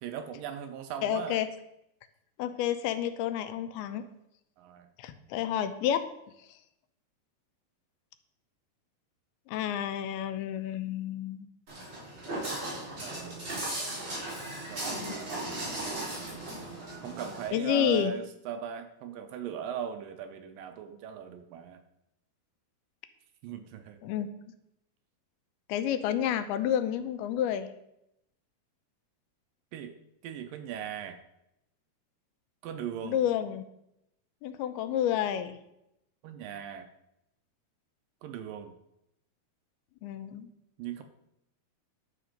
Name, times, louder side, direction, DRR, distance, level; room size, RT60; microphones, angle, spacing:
voice 1, 0.0-1.4 4.6-4.9 13.0-13.4 14.7-15.4 17.0-21.8 23.4-24.0 29.7-29.9 30.2-31.2 32.6-33.2 36.2-36.8 38.2-38.7 40.8-41.0, right 9 dB, 75° right, 7 dB, 2.2 m, -38 dB
voice 2, 1.0-1.5 2.4-4.0 5.0-6.1 9.5-11.5 14.9-15.1 17.5-18.1 24.0-24.3 25.7-27.7 33.0-33.6 34.4-35.6 40.0-40.5, left 10 dB, 90° left, 10 dB, 2.7 m, -30 dB
Walk footsteps, 11.7-17.5, right 1 dB, 30° right, 4.5 m, -37 dB
11.0 x 6.8 x 5.1 m, 0.82 s
omnidirectional pair, 4.4 m